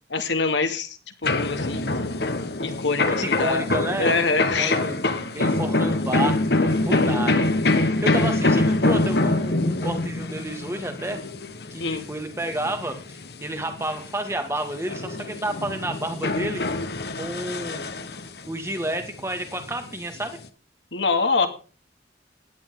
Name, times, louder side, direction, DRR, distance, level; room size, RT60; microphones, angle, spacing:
voice 1, 0.1-1.9 2.6-3.7 4.0-4.8 11.8-12.1 20.9-21.5, left 4 dB, 80° left, 7 dB, 2.4 m, -25 dB
sound 1, 1.2-14.3 14.7-18.4 18.8-20.5, left 2 dB, 60° left, 1.3 m, -25 dB
voice 2, 3.0-5.0 5.4-11.2 11.7-16.6 17.2-17.8 18.5-20.4, right 1 dB, 15° right, 6 dB, 2.1 m, -31 dB
17.0 x 11.5 x 3.8 m, 0.37 s
head